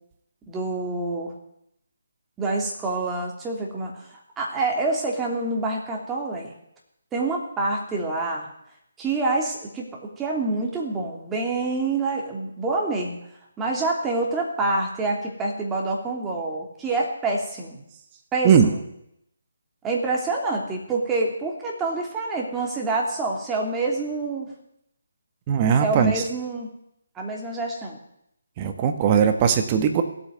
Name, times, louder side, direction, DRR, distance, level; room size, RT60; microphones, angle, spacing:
voice 1, 0.5-1.3 2.4-6.5 7.1-8.5 9.0-13.2 13.6-17.8 18.3-18.8 19.8-24.5 25.8-26.7 27.1-28.0, right 3 dB, 10° right, -1 dB, 3.0 m, -27 dB
voice 2, 25.5-26.1 28.6-30.0, right 7 dB, 30° right, 6 dB, 1.6 m, -19 dB
17.0 x 8.8 x 9.4 m, 0.76 s
figure-of-eight pair, 145°, 0 cm